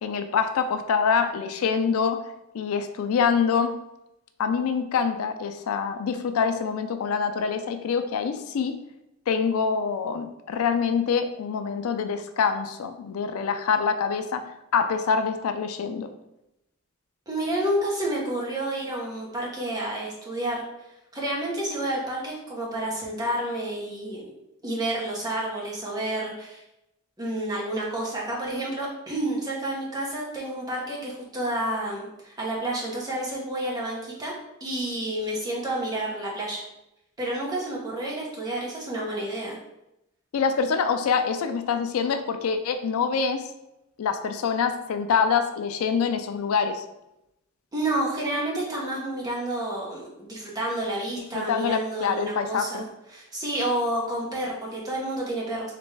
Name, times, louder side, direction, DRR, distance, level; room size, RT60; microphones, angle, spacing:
voice 1, 0.0-2.2 2.5-3.7 4.4-8.7 9.3-14.4 14.7-16.1 40.3-43.4 44.0-46.8 51.3-52.8, left 6 dB, 80° left, 8 dB, 0.4 m, -25 dB
voice 2, 17.3-20.6 21.1-24.3 24.6-26.6 27.2-34.3 34.6-36.6 37.2-39.6 47.7-52.9 53.1-55.7, right 1 dB, 20° right, -4 dB, 0.8 m, -30 dB
3.3 x 3.0 x 3.3 m, 0.88 s
head